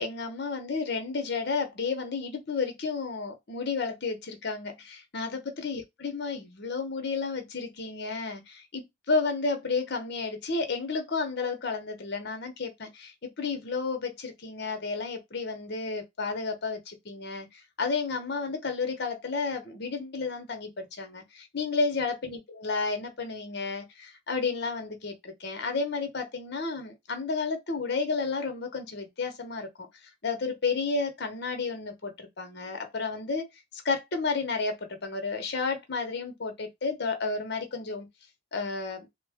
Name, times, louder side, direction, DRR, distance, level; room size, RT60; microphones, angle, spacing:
voice 1, 0.0-29.9 30.2-33.5 33.7-38.1 38.5-39.1, left 4 dB, 55° left, 0.9 m, -32 dB
3.2 x 2.5 x 3.5 m
head